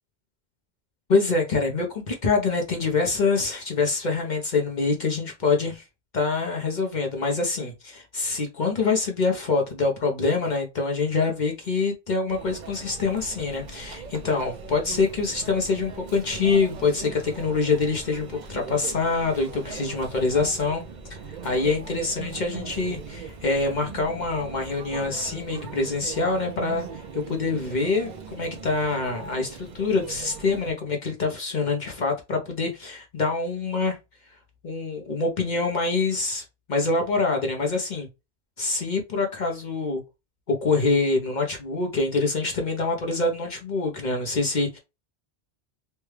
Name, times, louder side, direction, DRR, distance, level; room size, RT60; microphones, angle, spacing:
voice 1, 1.1-5.8 6.1-20.8 21.4-34.0 34.6-38.1 38.6-40.0 40.5-44.8, left 3 dB, 50° left, 0.8 m, -25 dB
Conversation / Chatter / Crowd, 12.3-30.7, right 5 dB, 50° right, 0.6 m, -39 dB
3.3 x 2.2 x 3.2 m
omnidirectional pair, 1.1 m